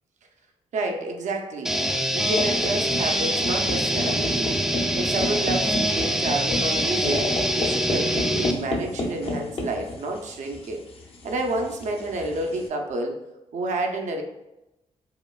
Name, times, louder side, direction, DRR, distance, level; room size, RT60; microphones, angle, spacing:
voice 1, 0.7-1.8 2.1-4.5 4.9-7.3 7.6-10.8 11.2-13.2 13.5-14.2, right 2 dB, 70° right, 3 dB, 0.6 m, -29 dB
sound 1, 1.6-8.5, equal, 5° right, 0.3 m, -24 dB
sound 2, 2.2-12.7, left 2 dB, 50° left, 0.5 m, -32 dB
4.8 x 2.4 x 2.3 m, 0.93 s
cardioid pair, 95°, 12 cm